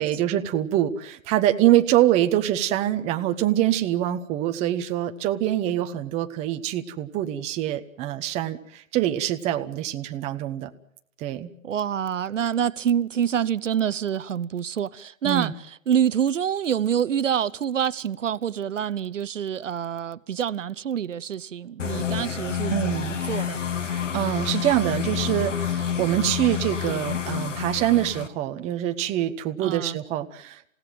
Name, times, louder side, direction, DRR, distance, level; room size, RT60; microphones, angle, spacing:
voice 1, 0.0-10.7 11.2-11.5 15.2-15.5 22.7-23.2 23.9-30.7, right 12 dB, 15° right, 0.9 m, -24 dB
voice 2, 11.6-23.6 29.6-30.0, right 9 dB, 65° right, 0.8 m, -26 dB
sound 1, 21.8-28.3, left 8 dB, 65° left, 2.3 m, -29 dB
28.5 x 17.0 x 7.6 m
figure-of-eight pair, 135°, 40 cm